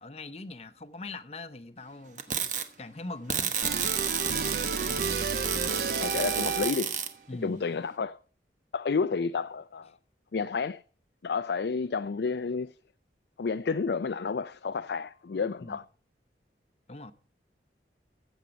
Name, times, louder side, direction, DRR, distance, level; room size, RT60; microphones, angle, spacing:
voice 1, 0.0-2.5 2.8-3.6 7.3-7.6 15.6-15.8 16.9-17.1, left 2 dB, 35° left, 0.8 m, -41 dB
sound 1, 2.2-2.6 3.3-7.1, right 7 dB, 45° right, 1.1 m, -31 dB
sound 2, 3.6-7.0, right 4 dB, 60° right, 0.6 m, -32 dB
voice 2, 6.0-7.0 7.4-8.2 8.7-10.0 10.3-10.8 11.2-12.7 13.4-15.8, left 5 dB, 70° left, 0.4 m, -30 dB
14.5 x 8.1 x 5.1 m
head